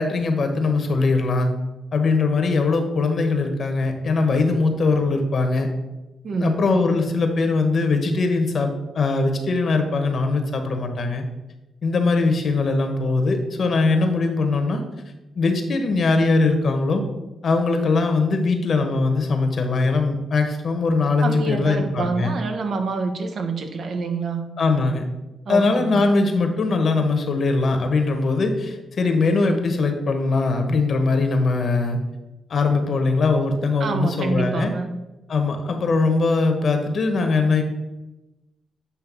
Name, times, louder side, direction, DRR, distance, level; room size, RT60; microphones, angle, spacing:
voice 1, 0.0-1.5 1.9-5.7 6.4-11.2 11.8-14.8 15.4-17.0 17.4-22.3 24.6-25.0 25.5-32.0 32.5-34.7 35.3-37.6, left 3 dB, 55° left, 5 dB, 1.2 m, -21 dB
voice 2, 6.2-6.6 21.2-24.5 25.4-26.1 33.8-34.9, right 4 dB, 65° right, 6 dB, 0.9 m, -26 dB
8.4 x 3.2 x 6.1 m, 1.0 s
cardioid pair, 105°, 0 cm